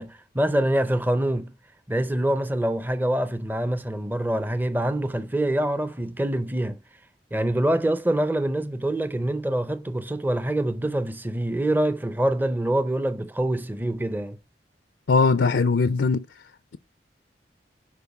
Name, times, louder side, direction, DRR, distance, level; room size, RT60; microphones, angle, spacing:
voice 1, 0.0-1.5 1.9-6.8 7.3-14.4, right 1 dB, 10° right, 0.5 m, -25 dB
voice 2, 15.1-16.2, left 4 dB, 80° left, 0.5 m, -20 dB
8.2 x 5.3 x 7.0 m
head